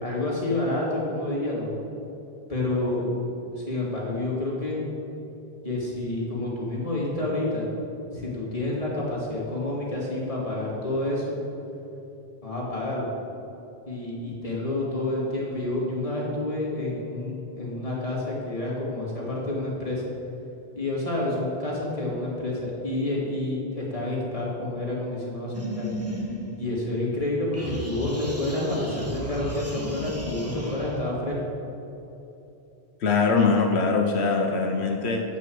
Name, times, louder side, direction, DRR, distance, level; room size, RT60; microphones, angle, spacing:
voice 1, 0.0-1.7 2.5-3.1 3.5-4.8 5.6-7.7 8.1-11.4 12.4-13.1 13.9-20.0 20.7-25.9 26.6-31.4, left 2 dB, 35° left, -5 dB, 2.7 m, -29 dB
sound 1, 25.5-27.2 27.5-31.0, equal, 15° right, 1.5 m, -34 dB
voice 2, 33.0-35.2, left 4 dB, 85° left, 2 dB, 1.1 m, -22 dB
9.2 x 6.0 x 7.8 m, 2.9 s
omnidirectional pair, 1.1 m